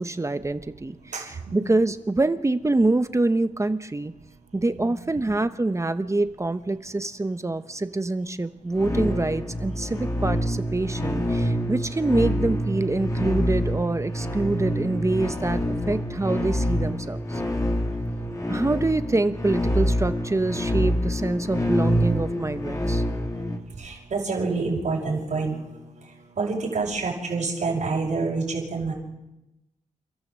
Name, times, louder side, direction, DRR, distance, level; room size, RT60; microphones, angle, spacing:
voice 1, 0.0-4.1 4.5-17.4 18.5-23.0, right 2 dB, 20° right, 10 dB, 1.0 m, -25 dB
voice 2, 1.1-1.6 4.8-5.3 23.8-25.8 26.4-28.9, right 4 dB, 75° right, -6 dB, 5.9 m, -28 dB
sound 1, 8.8-23.6, equal, 25° left, 2.7 m, -26 dB
29.5 x 13.5 x 7.6 m, 1.0 s
wide cardioid pair, 100°, 13 cm